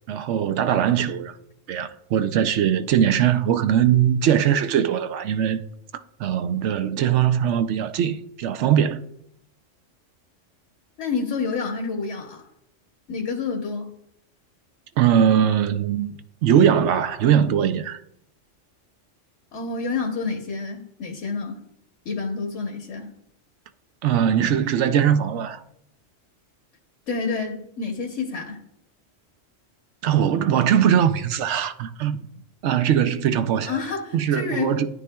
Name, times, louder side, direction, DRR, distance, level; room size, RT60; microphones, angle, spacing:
voice 1, 0.1-1.4 1.7-5.6 6.2-9.0 15.0-18.0 24.0-25.6 30.0-32.2 32.6-33.8 34.1-34.9, right 9 dB, 75° right, 0.9 m, -21 dB
voice 2, 11.0-12.4 13.1-13.9 19.5-21.6 22.0-23.1 27.1-28.6 33.6-34.8, left 4 dB, 70° left, 1.4 m, -29 dB
13.5 x 9.8 x 2.3 m
omnidirectional pair, 1.3 m